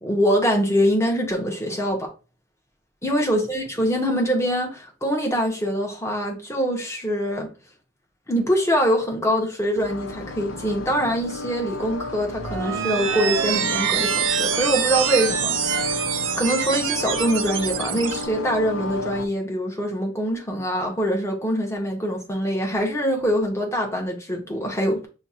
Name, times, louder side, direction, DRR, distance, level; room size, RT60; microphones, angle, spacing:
voice 1, 0.0-2.1 3.0-7.5 8.3-16.0 16.4-25.1, equal, 15° left, 1.1 m, -24 dB
sound 1, 9.7-19.3, left 2 dB, 90° left, 0.7 m, -32 dB
sound 2, 12.3-18.2, right 9 dB, 85° right, 0.5 m, -25 dB
6.5 x 2.3 x 2.8 m
head